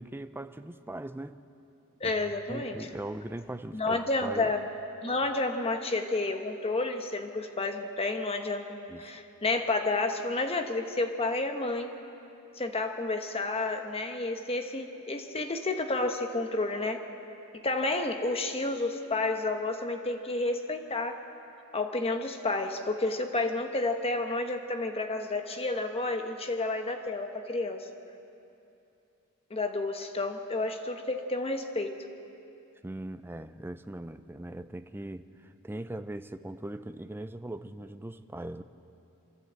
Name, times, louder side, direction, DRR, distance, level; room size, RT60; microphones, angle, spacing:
voice 1, 0.0-1.4 2.0-4.5 8.9-9.1 32.8-38.6, right 1 dB, 10° right, 11 dB, 0.5 m, -40 dB
voice 2, 2.0-2.8 3.7-4.6 5.0-11.9 12.6-17.0 17.6-21.2 21.7-27.9 29.5-32.0, left 2 dB, 25° left, 5 dB, 1.0 m, -30 dB
24.5 x 14.0 x 8.0 m, 2.7 s
head